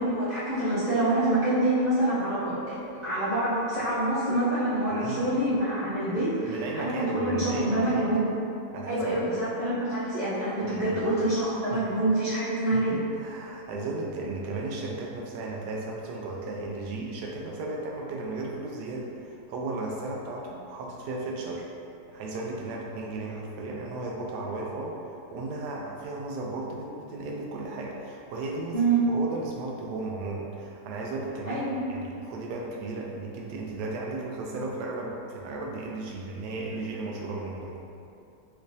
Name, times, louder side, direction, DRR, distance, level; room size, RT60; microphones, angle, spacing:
voice 1, 0.0-8.3 8.9-13.0 28.7-29.0 31.5-31.8, right 1 dB, 65° left, -14 dB, 0.4 m, -26 dB
voice 2, 4.9-5.4 6.1-8.1 8.7-9.3 10.6-11.0 11.7-11.9 12.7-21.7 22.1-25.0 25.3-37.8, right 2 dB, 80° right, -2 dB, 1.2 m, -35 dB
3.2 x 3.1 x 2.6 m, 2.6 s
omnidirectional pair, 1.8 m